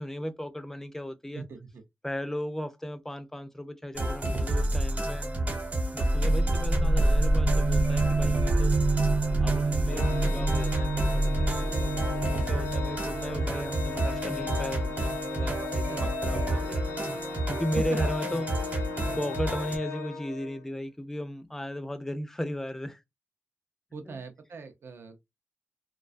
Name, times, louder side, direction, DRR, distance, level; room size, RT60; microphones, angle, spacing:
voice 1, 0.0-1.5 2.0-5.4 5.9-8.8 9.4-16.9 17.5-18.5 19.1-23.0 24.1-24.2, equal, 10° left, 0.3 m, -36 dB
voice 2, 1.3-1.8 15.8-16.1 23.9-25.2, right 4 dB, 75° right, 0.4 m, -42 dB
sound 1, 4.0-19.8, right 1 dB, 45° right, 0.9 m, -30 dB
sound 2, 6.1-17.5, right 2 dB, 90° right, 0.9 m, -29 dB
Organ, 9.9-20.7, left 5 dB, 90° left, 0.7 m, -37 dB
2.3 x 2.2 x 2.4 m
wide cardioid pair, 130°, 4 cm